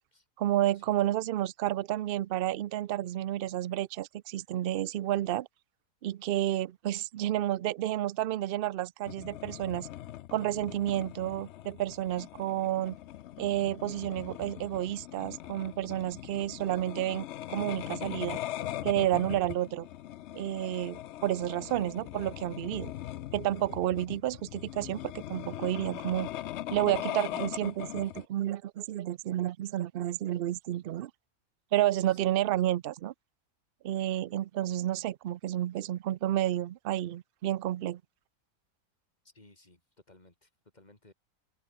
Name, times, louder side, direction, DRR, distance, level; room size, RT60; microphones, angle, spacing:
voice 1, 0.4-5.5 6.0-9.9 10.3-12.9 13.4-18.4 18.8-19.9 20.3-22.9 23.3-26.3 26.7-31.1 31.7-33.1 33.8-38.0, right 13 dB, 85° right, 0.5 m, -30 dB
sound 1, 9.1-28.2, left 13 dB, 65° left, 0.7 m, -41 dB
voice 2, 32.0-32.3 39.2-39.8 40.1-41.1, left 2 dB, 30° left, 3.6 m, -59 dB
open air
omnidirectional pair, 1.5 m